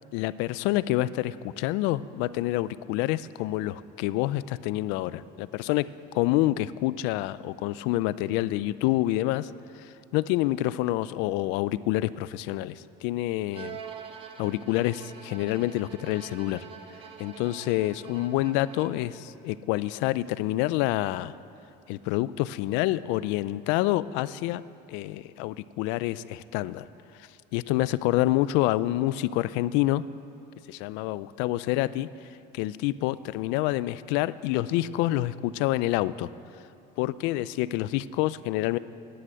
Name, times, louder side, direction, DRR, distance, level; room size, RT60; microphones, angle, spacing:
voice 1, 0.1-9.5 9.8-13.8 14.4-16.6 17.2-21.4 21.9-24.6 24.9-26.9 27.5-30.0 30.7-32.1 32.5-36.3 37.0-38.8, left 16 dB, 80° left, 17 dB, 0.4 m, -27 dB
Bowed string instrument, 13.5-19.2, right 7 dB, 30° right, 0.7 m, -45 dB
10.0 x 9.8 x 7.9 m, 2.6 s
cardioid pair, 180°, 19 cm